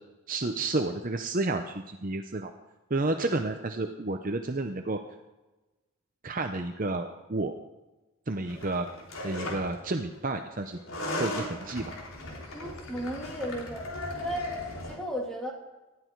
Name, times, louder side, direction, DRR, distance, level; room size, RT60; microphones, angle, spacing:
voice 1, 0.3-2.5 2.9-5.0 6.2-7.5 8.3-8.9 9.2-10.8 11.2-11.9, right 2 dB, 40° right, 6 dB, 0.8 m, -31 dB
sound 1, 8.4-9.8 10.7-15.0, left 1 dB, 70° left, 3.5 m, -37 dB
voice 2, 12.5-13.8 14.2-14.5 14.8-15.5, equal, ahead, -2 dB, 2.9 m, -34 dB
19.0 x 13.5 x 4.7 m, 1.1 s
head